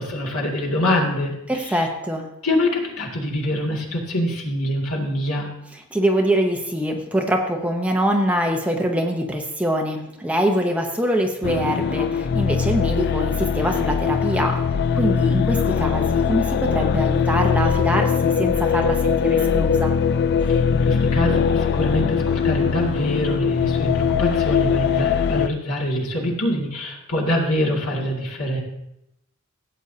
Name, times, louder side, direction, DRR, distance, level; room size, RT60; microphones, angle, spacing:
voice 1, 0.0-1.4 1.6-1.8 2.4-5.5 20.5-28.6, left 1 dB, 70° left, -2 dB, 2.2 m, -24 dB
voice 2, 1.5-2.3 5.9-14.6 14.9-19.9, equal, 5° right, 2 dB, 0.8 m, -23 dB
sound 1, 11.4-25.5, left 6 dB, 50° left, 0.3 m, -21 dB
16.0 x 8.1 x 2.8 m, 0.85 s
head